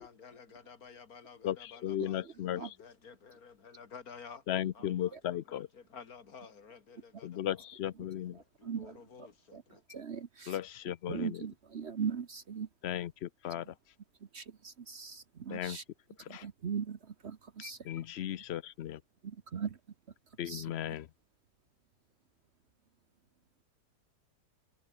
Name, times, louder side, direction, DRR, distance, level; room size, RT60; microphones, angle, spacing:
voice 1, 0.0-2.2 2.5-4.4 4.8-7.4 8.6-9.8, left 6 dB, 60° left, 2.3 m, -52 dB
voice 2, 1.4-2.8 4.5-5.7 7.2-8.4 10.5-11.4 12.8-13.7 15.5-15.8 16.2-16.5 17.6-19.0 20.4-21.1, left 11 dB, 85° left, 0.5 m, -36 dB
voice 3, 8.6-9.6 9.9-10.5 11.1-12.7 14.3-15.8 16.3-17.8 19.2-19.8 20.5-20.6, right 7 dB, 45° right, 1.1 m, -39 dB
omnidirectional pair, 1.8 m